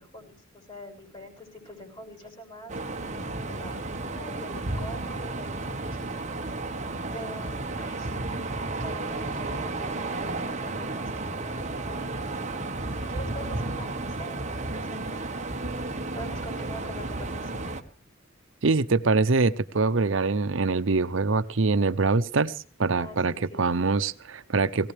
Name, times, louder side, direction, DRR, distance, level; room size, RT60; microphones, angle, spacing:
voice 1, 0.0-3.0 3.5-6.1 7.1-12.2 12.9-15.5 16.1-18.0 22.9-23.9, equal, 30° left, 2 dB, 6.4 m, -45 dB
sound 1, 2.7-17.8, right 2 dB, 40° right, 1.3 m, -33 dB
voice 2, 18.6-24.9, right 4 dB, 80° right, 14 dB, 0.8 m, -24 dB
18.5 x 17.5 x 3.4 m, 0.37 s
head